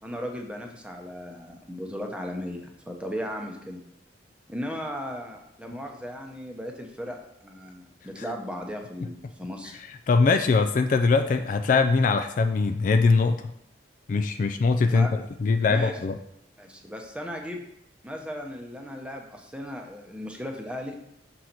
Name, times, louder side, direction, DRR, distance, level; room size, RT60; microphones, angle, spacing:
voice 1, 0.0-3.8 4.5-9.8 14.9-15.1 15.7-16.0 16.6-17.6 18.0-21.0, equal, 5° right, 2 dB, 0.7 m, -36 dB
voice 2, 10.1-13.4 14.1-15.1 15.4-16.2, left 4 dB, 45° left, 8 dB, 0.3 m, -21 dB
6.3 x 4.0 x 4.4 m, 0.79 s
head